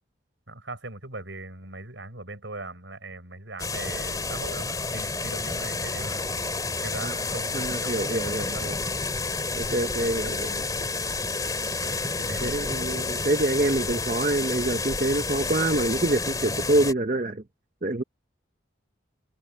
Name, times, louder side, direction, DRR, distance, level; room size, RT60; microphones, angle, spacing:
voice 1, 0.5-6.3 6.8-8.7 11.7-12.7, right 2 dB, 75° right, 6.6 m, -40 dB
sound 1, 3.6-16.9, left 3 dB, 20° left, 3.2 m, -30 dB
voice 2, 7.5-8.8 9.6-10.7 12.4-17.4 17.8-18.0, right 2 dB, 45° right, 0.8 m, -26 dB
head